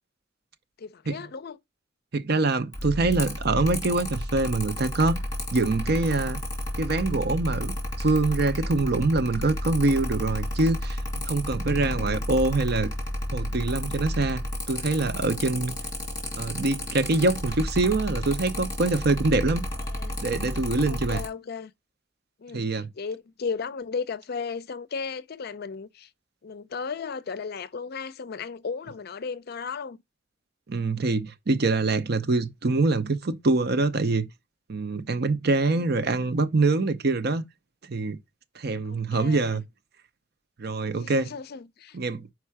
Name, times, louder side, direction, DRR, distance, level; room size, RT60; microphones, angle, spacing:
voice 1, 0.8-1.6 11.7-12.3 19.8-20.2 20.9-21.7 22.4-26.1 26.4-30.0 35.7-36.0 38.9-39.6 41.0-42.0, left 5 dB, 55° left, 0.5 m, -35 dB
voice 2, 2.1-5.2 5.5-6.4 6.8-12.9 13.3-15.7 16.4-19.7 20.2-21.2 22.5-22.9 30.7-34.3 34.7-37.4 37.9-38.2 38.6-39.6 40.6-41.3 41.9-42.3, right 3 dB, 55° right, 0.7 m, -25 dB
Mechanical fan, 2.7-21.3, left 1 dB, 20° left, 2.5 m, -32 dB
5.5 x 4.7 x 4.6 m
head